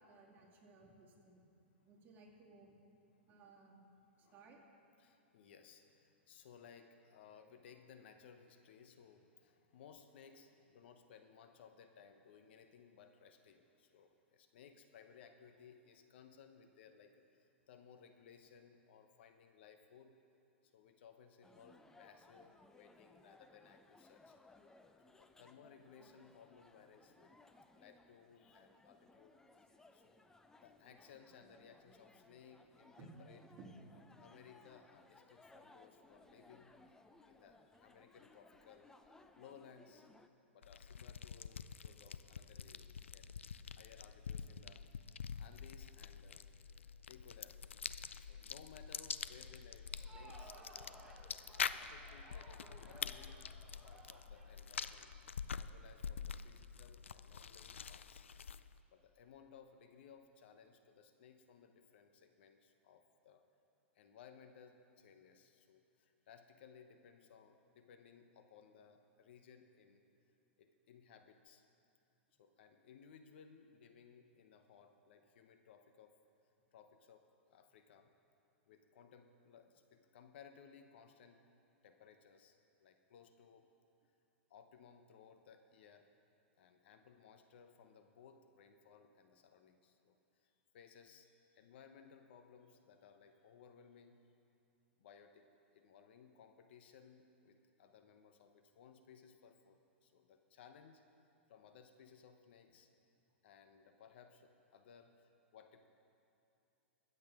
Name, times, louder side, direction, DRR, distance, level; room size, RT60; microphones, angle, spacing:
voice 1, 0.0-1.5 1.9-2.7 3.3-3.9 4.3-4.6 33.0-33.1 33.5-33.7, right 3 dB, 30° right, -2 dB, 2.5 m, -59 dB
voice 2, 5.0-20.1 20.6-24.4 25.1-27.3 27.7-29.3 29.9-30.2 30.6-33.4 33.9-36.7 37.2-38.9 39.3-40.1 40.5-43.3 43.7-47.6 48.2-51.0 51.5-53.5 53.8-55.1 55.5-58.2 58.9-63.4 63.9-70.1 70.6-71.6 72.4-76.2 76.7-78.1 78.7-81.4 81.8-83.7 84.5-86.1 86.6-94.2 95.0-95.5 95.7-101.0 101.5-102.9 103.4-105.9, left 7 dB, 65° left, 7 dB, 0.9 m, -61 dB
sound 1, 21.4-40.3, left 2 dB, 10° left, 0.6 m, -64 dB
sound 2, 40.6-58.8, left 6 dB, 85° left, 0.4 m, -46 dB
Crowd, 49.9-55.7, right 2 dB, 10° right, 1.5 m, -60 dB
23.5 x 7.9 x 3.7 m, 2.8 s
hypercardioid pair, 110°, 7 cm